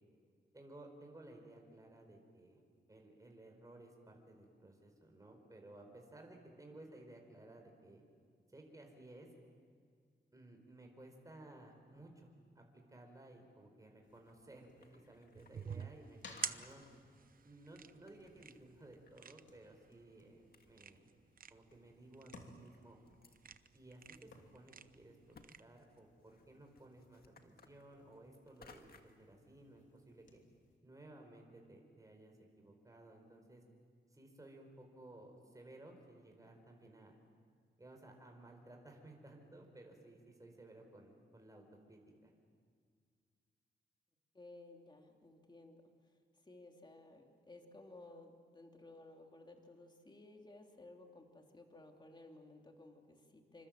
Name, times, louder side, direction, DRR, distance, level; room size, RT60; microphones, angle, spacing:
voice 1, 0.5-2.6 2.9-8.0 8.5-9.3 10.3-12.3 12.5-16.8 17.4-21.1 21.5-23.0 23.7-30.4 30.8-33.6 34.1-37.1 37.8-42.3, right 1 dB, 20° right, 2 dB, 4.6 m, -57 dB
sound 1, 14.0-30.8, left 3 dB, 80° left, 2.9 m, -64 dB
sound 2, 14.0-14.4 14.7-16.1 16.4-17.0 17.7-19.3 19.5-19.6 20.2-20.3 20.5-21.3 21.9-22.0 22.7-23.4 24.0-24.1 24.5-24.6 25.3-25.5 25.8-29.2, left 5 dB, 55° left, 1.8 m, -63 dB
sound 3, 15.3-25.6, right 6 dB, 50° right, 0.8 m, -49 dB
voice 2, 44.3-53.7, left 2 dB, 25° left, 2 dB, 2.9 m, -57 dB
27.5 x 25.5 x 7.5 m, 2.1 s
wide cardioid pair, 125°, 19 cm